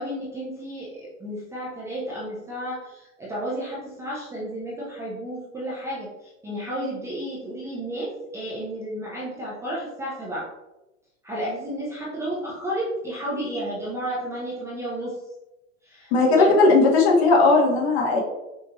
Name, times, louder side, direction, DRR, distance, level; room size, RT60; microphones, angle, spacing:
voice 1, 0.0-10.5 11.2-15.2 15.8-16.5, right 1 dB, 5° right, -7 dB, 0.6 m, -32 dB
voice 2, 16.1-18.2, left 3 dB, 50° left, 0 dB, 1.3 m, -17 dB
5.8 x 2.7 x 2.9 m, 0.98 s
hypercardioid pair, 140°, 42 cm